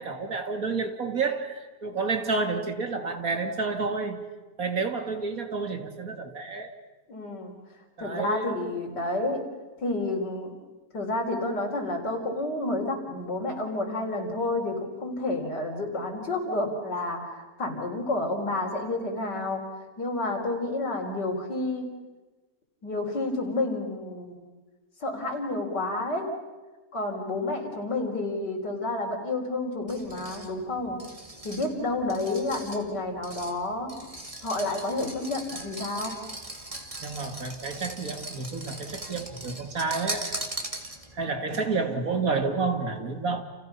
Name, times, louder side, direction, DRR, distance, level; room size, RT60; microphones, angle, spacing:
voice 1, 0.0-4.3 4.6-6.8 8.0-8.5 37.0-40.5 41.1-43.4, right 4 dB, 55° right, 6 dB, 2.5 m, -30 dB
voice 2, 7.1-7.5 8.0-9.5 9.8-10.5 10.9-19.7 20.0-21.9 22.8-24.4 25.0-26.3 26.9-31.0 31.4-33.9 34.4-36.2, left 2 dB, 80° left, 2 dB, 4.8 m, -30 dB
sound 1, 29.9-41.3, right 1 dB, 20° right, 2.4 m, -40 dB
30.0 x 30.0 x 5.7 m, 1.2 s
omnidirectional pair, 1.8 m